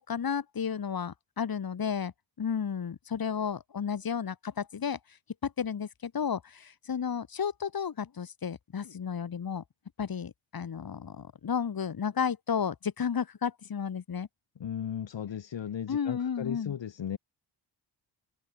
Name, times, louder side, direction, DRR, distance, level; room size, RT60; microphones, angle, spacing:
voice 1, 0.0-2.1 2.4-5.0 5.4-9.6 10.0-14.3 15.9-16.7, left 7 dB, 45° left, 5.7 m, -32 dB
voice 2, 14.6-17.2, left 9 dB, 65° left, 4.8 m, -36 dB
open air
wide cardioid pair, 175°, 47 cm